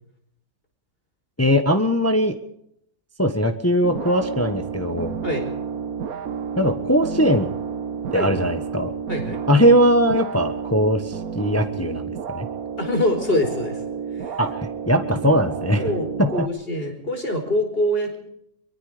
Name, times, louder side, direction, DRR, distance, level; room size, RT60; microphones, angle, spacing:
voice 1, 1.4-2.4 3.2-5.2 6.6-7.5 8.1-8.9 9.5-12.5 14.4-14.6 14.9-15.8 16.2-16.5, equal, 10° left, 7 dB, 1.1 m, -20 dB
sound 1, 3.8-16.5, right 6 dB, 70° right, 1.6 m, -31 dB
voice 2, 9.1-9.4 12.8-13.8 14.1-14.4 15.8-18.2, left 1 dB, 35° left, 4 dB, 4.9 m, -24 dB
23.0 x 22.5 x 5.1 m, 0.73 s
omnidirectional pair, 1.6 m